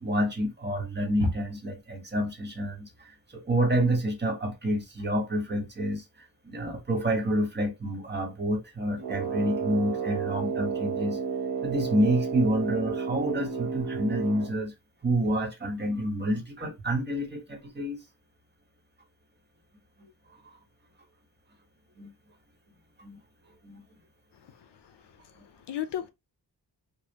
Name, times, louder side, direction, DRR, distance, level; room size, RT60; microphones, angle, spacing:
voice 1, 0.0-6.0 6.4-11.2 11.6-14.7 15.0-18.0 22.0-22.1 23.0-23.2 23.6-23.8 25.4-25.5, right 1 dB, 25° right, 1.2 m, -28 dB
Brass instrument, 9.0-14.6, right 6 dB, 65° right, 0.9 m, -32 dB
voice 2, 24.4-25.0 25.5-26.1, left 10 dB, 75° left, 0.6 m, -36 dB
5.2 x 2.3 x 2.8 m
wide cardioid pair, 145°, 42 cm